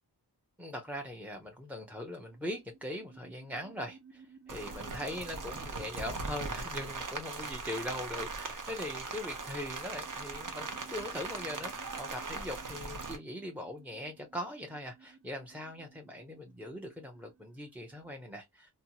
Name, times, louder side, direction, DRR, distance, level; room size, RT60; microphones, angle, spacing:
voice 1, 0.6-18.7, left 1 dB, 5° right, 0.5 m, -41 dB
sound 1, 1.9-18.1, right 5 dB, 75° right, 1.0 m, -58 dB
Rain, 4.5-13.2, right 3 dB, 50° right, 0.8 m, -40 dB
2.7 x 2.2 x 2.7 m
wide cardioid pair, 80°, 41 cm